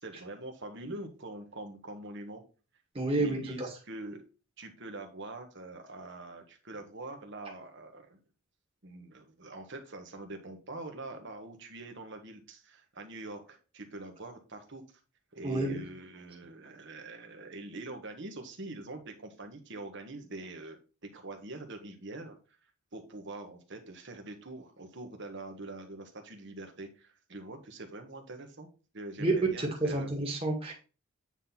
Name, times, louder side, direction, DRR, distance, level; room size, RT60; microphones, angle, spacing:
voice 1, 0.0-2.4 3.2-4.2 4.6-8.2 8.8-14.8 15.3-20.8 21.1-22.4 22.9-28.7 28.9-30.1, right 2 dB, 55° right, 4 dB, 1.4 m, -44 dB
voice 2, 2.9-3.4 15.4-15.8 29.2-30.7, right 2 dB, 25° right, 0 dB, 2.0 m, -29 dB
9.0 x 4.0 x 4.3 m, 0.34 s
head